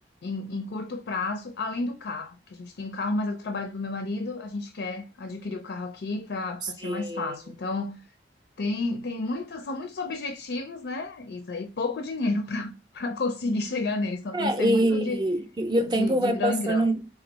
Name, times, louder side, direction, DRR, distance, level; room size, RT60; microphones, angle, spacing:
voice 1, 0.2-8.0 8.6-15.2 15.9-16.9, left 3 dB, 75° left, 0.4 m, -31 dB
voice 2, 6.6-7.3 14.3-17.1, right 1 dB, 25° right, 0.5 m, -25 dB
4.3 x 2.4 x 4.0 m
head